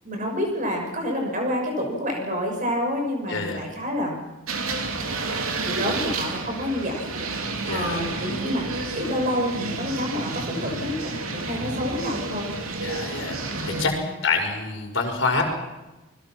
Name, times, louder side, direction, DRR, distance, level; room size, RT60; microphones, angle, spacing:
voice 1, 0.0-4.2 5.3-7.2 7.7-8.7 8.9-12.5 13.6-14.0, equal, 35° right, 1 dB, 6.5 m, -28 dB
voice 2, 3.3-3.6 7.7-8.0 12.8-13.4 13.6-13.9 14.2-15.4, left 4 dB, 55° left, 2 dB, 5.5 m, -26 dB
sound 1, 4.5-13.9, right 3 dB, 75° right, 3.0 m, -30 dB
29.0 x 21.0 x 6.1 m, 1.1 s
head